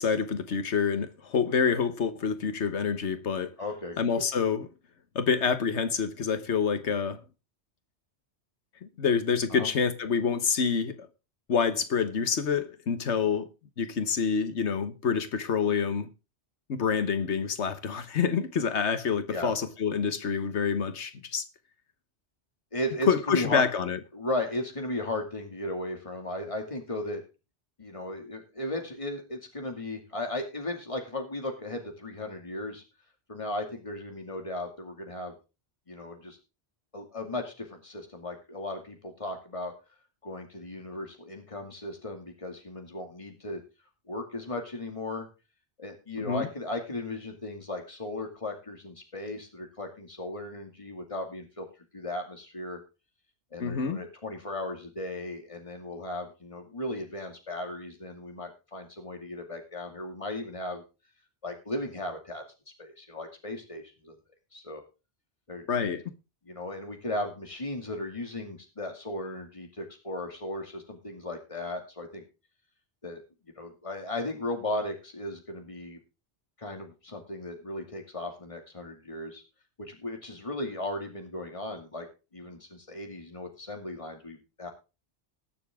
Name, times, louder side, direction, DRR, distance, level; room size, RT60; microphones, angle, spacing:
voice 1, 0.0-3.5 4.0-4.7 5.1-7.2 8.8-11.1 11.5-13.5 13.8-16.1 16.7-21.4 23.1-24.0 46.2-46.5 53.6-54.0 65.7-66.0, left 6 dB, 80° left, 1.5 m, -27 dB
voice 2, 3.6-4.2 9.5-9.7 19.3-19.5 22.7-23.6 24.1-27.2 27.8-32.8 33.3-35.3 35.9-36.4 36.9-39.7 40.2-43.6 44.1-45.3 45.8-51.7 51.9-52.8 53.5-60.8 61.4-62.4 62.8-64.2 64.5-64.8 65.5-65.9 66.4-72.2 73.0-73.2 73.6-76.0 76.6-79.4 79.8-82.1 82.3-84.7, left 1 dB, 30° left, 2.4 m, -36 dB
20.0 x 7.0 x 3.6 m
omnidirectional pair, 1.2 m